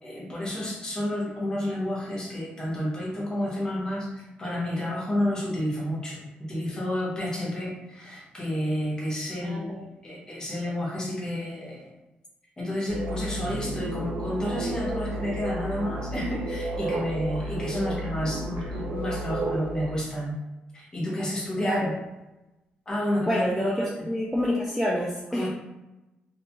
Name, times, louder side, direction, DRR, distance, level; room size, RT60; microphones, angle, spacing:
voice 1, 0.0-6.2 6.5-9.7 10.0-11.9 12.6-20.4 20.7-21.9 22.9-23.5 23.8-23.9 25.3-25.5, left 1 dB, 20° left, -4 dB, 0.8 m, -30 dB
voice 2, 9.4-9.8 17.5-18.0 21.6-21.9 23.3-25.5, equal, ahead, -5 dB, 0.3 m, -28 dB
sound 1, 12.9-20.0, right 1 dB, 90° right, 0.4 m, -32 dB
2.6 x 2.3 x 2.8 m, 1.0 s
wide cardioid pair, 155°, 3 cm